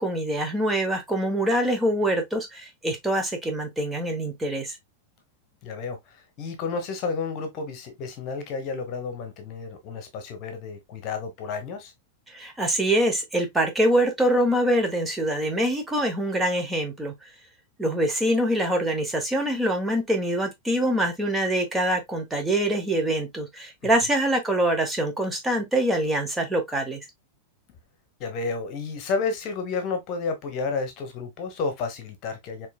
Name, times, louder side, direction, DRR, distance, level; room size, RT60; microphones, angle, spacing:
voice 1, 0.0-4.8 12.3-17.1 17.8-27.0, right 1 dB, 10° right, 1.1 m, -24 dB
voice 2, 5.6-11.9 28.2-32.7, left 4 dB, 40° left, 1.1 m, -31 dB
4.4 x 3.0 x 2.2 m
figure-of-eight pair, 90°, 0 cm